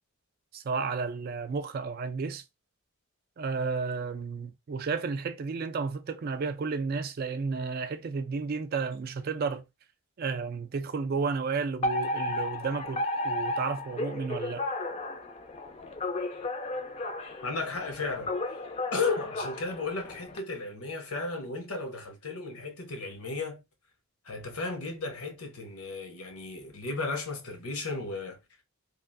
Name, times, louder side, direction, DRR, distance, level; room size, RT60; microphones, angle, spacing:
voice 1, 0.5-2.4 3.4-9.6 10.2-14.7, right 4 dB, 45° right, 0.3 m, -32 dB
Alarm, 11.8-20.4, left 2 dB, 30° left, 0.4 m, -34 dB
voice 2, 17.4-18.6 18.9-23.6 24.2-28.4, left 3 dB, 80° left, 0.9 m, -34 dB
3.0 x 2.4 x 2.5 m
head